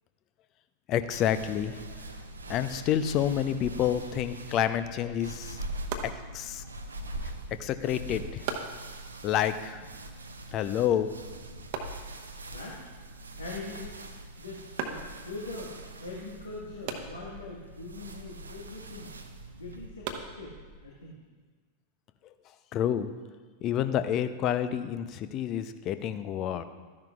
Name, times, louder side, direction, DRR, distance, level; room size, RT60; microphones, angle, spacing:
voice 1, 0.9-1.8 2.5-5.6 6.0-6.6 7.6-8.4 9.2-9.8 10.5-11.1 22.7-23.1 23.6-26.6, left 10 dB, 35° left, 12 dB, 0.5 m, -29 dB
sound 1, 1.1-19.9, right 1 dB, 75° right, 0.7 m, -43 dB
sound 2, 5.8-21.1, right 6 dB, 50° right, 1.0 m, -44 dB
voice 2, 12.5-12.8 13.4-14.0 14.4-15.7 16.0-19.1 19.5-21.2, left 3 dB, 75° left, -4 dB, 1.5 m, -42 dB
13.0 x 10.5 x 2.4 m, 1.4 s
figure-of-eight pair, 90°, 0 cm